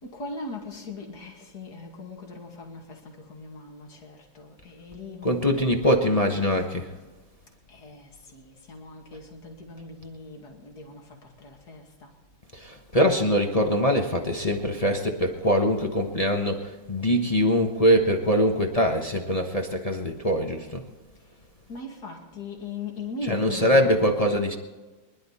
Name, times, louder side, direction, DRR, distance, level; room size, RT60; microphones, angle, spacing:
voice 1, 0.0-5.5 7.7-12.1 21.7-24.1, left 3 dB, 55° left, 2.9 m, -40 dB
voice 2, 5.2-6.9 12.5-20.8 23.3-24.6, equal, 25° left, 1.0 m, -23 dB
24.5 x 11.5 x 4.2 m
omnidirectional pair, 2.1 m